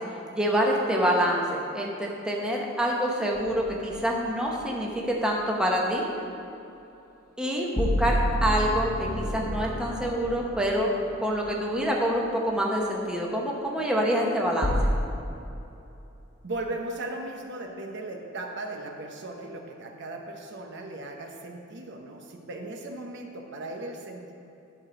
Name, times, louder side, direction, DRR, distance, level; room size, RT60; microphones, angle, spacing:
voice 1, 0.3-4.9 5.2-6.0 7.4-10.9 11.2-14.9, equal, 5° right, -2 dB, 1.0 m, -26 dB
sound 1, 3.4-3.9 7.8-11.2 14.6-14.8, equal, 40° left, 1.2 m, -29 dB
voice 2, 16.4-24.3, right 2 dB, 55° right, 2 dB, 0.9 m, -37 dB
11.5 x 4.9 x 6.2 m, 2.8 s
head